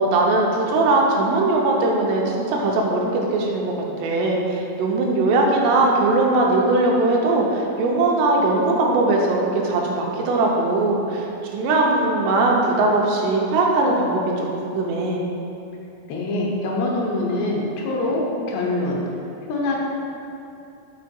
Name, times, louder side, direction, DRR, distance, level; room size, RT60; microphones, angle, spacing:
voice 1, 0.0-3.7 4.0-11.3 11.5-15.2, right 2 dB, 85° right, -1 dB, 2.9 m, -20 dB
voice 2, 16.1-18.2 18.5-19.0 19.5-19.8, left 2 dB, 90° left, -2 dB, 3.1 m, -24 dB
7.3 x 3.8 x 4.4 m, 2.7 s
omnidirectional pair, 4.8 m